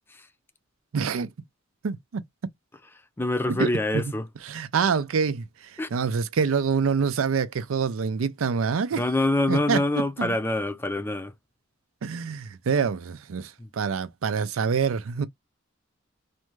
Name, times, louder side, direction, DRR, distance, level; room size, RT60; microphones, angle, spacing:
voice 1, 0.9-1.3 1.8-2.2 3.5-3.7 3.9-4.0 4.5-9.0 9.5-9.8 10.2-10.3 12.0-15.3, right 6 dB, 90° right, 0.5 m, -26 dB
voice 2, 3.2-4.3 5.8-5.9 8.9-11.3 13.6-13.7, left 2 dB, 10° left, 0.4 m, -25 dB
2.5 x 2.3 x 3.0 m
head